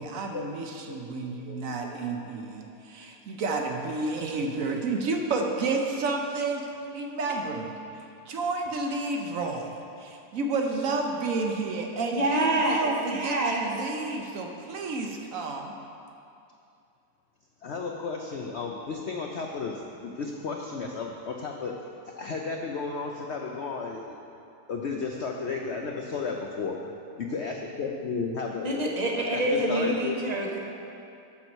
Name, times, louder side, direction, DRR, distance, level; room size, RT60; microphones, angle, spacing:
voice 1, 0.0-6.7 6.9-7.8 8.3-15.8, right 3 dB, 60° right, 2 dB, 1.0 m, -31 dB
voice 2, 1.2-1.6 1.8-2.0 17.6-21.7 22.2-24.2 24.7-26.7 27.2-28.8 29.3-30.2, left 4 dB, 80° left, 1 dB, 0.6 m, -33 dB
voice 3, 12.1-13.7 28.6-30.6, right 1 dB, 35° right, -1 dB, 0.7 m, -26 dB
13.0 x 4.5 x 5.3 m, 2.6 s
omnidirectional pair, 1.9 m